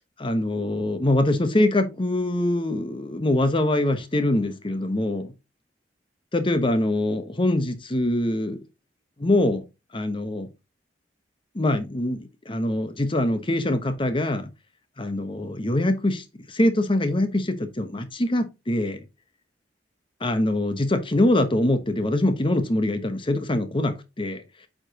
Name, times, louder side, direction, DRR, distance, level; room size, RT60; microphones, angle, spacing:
voice 1, 0.2-5.3 6.3-8.6 9.2-9.6 9.9-10.5 11.5-14.5 15.0-19.0 20.2-24.4, left 1 dB, 30° left, 1.0 m, -24 dB
8.3 x 5.2 x 2.9 m
head